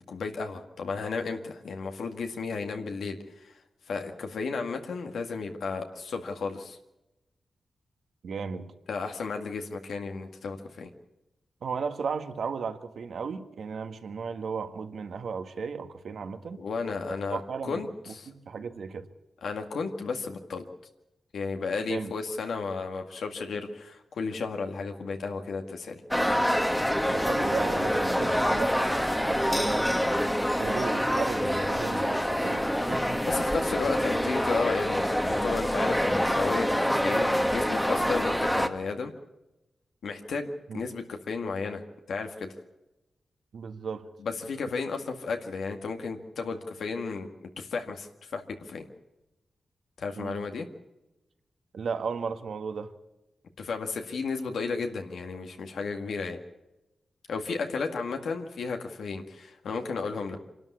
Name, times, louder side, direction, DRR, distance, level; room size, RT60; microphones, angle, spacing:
voice 1, 0.1-3.5 3.9-6.8 8.9-10.9 16.6-18.3 19.4-20.6 21.3-26.0 28.2-28.3 33.2-39.1 40.0-41.8 42.1-42.6 44.2-48.9 50.0-50.7 53.6-56.4 57.3-60.4, left 4 dB, 85° left, 4 dB, 2.0 m, -33 dB
voice 2, 8.2-8.7 11.6-16.6 17.3-19.1 21.9-22.1 27.1-29.8 30.6-33.2 40.7-40.8 43.5-44.1 50.2-50.5 51.7-52.9, right 5 dB, 75° right, 8 dB, 1.6 m, -35 dB
sound 1, 26.1-38.7, equal, 5° left, 1.3 m, -26 dB
26.0 x 12.5 x 8.4 m, 0.96 s
wide cardioid pair, 115°, 0 cm